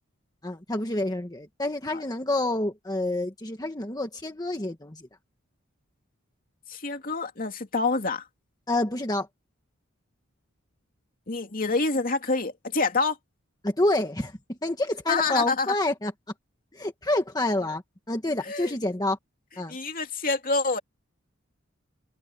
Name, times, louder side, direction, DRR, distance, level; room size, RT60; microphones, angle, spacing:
voice 1, 0.4-5.1 8.7-9.3 13.6-16.1 16.7-17.8 18.1-19.2 19.6-19.7, left 1 dB, 20° left, 1.5 m, -28 dB
voice 2, 6.7-8.3 11.3-13.2 15.1-15.7 18.4-18.7 19.7-20.8, left 3 dB, 45° left, 2.7 m, -27 dB
open air
head